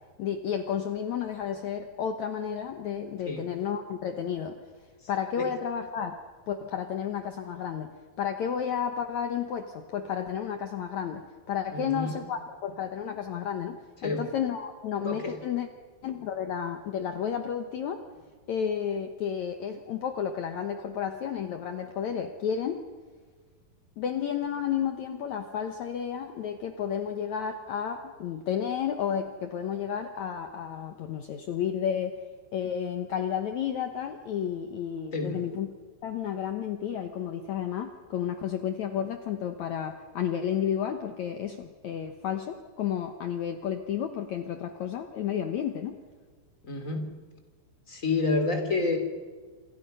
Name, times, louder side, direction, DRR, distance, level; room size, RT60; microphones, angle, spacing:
voice 1, 0.2-4.6 5.1-6.2 6.5-15.7 16.0-18.0 18.5-22.8 24.0-32.2 32.5-35.7 36.0-46.0, left 8 dB, 80° left, 6 dB, 1.6 m, -32 dB
voice 2, 11.7-12.2 14.0-14.3 15.0-15.3 35.1-35.4 46.6-47.1 47.9-49.0, left 3 dB, 20° left, 5 dB, 2.8 m, -29 dB
28.5 x 27.5 x 5.6 m, 1.5 s
omnidirectional pair, 5.0 m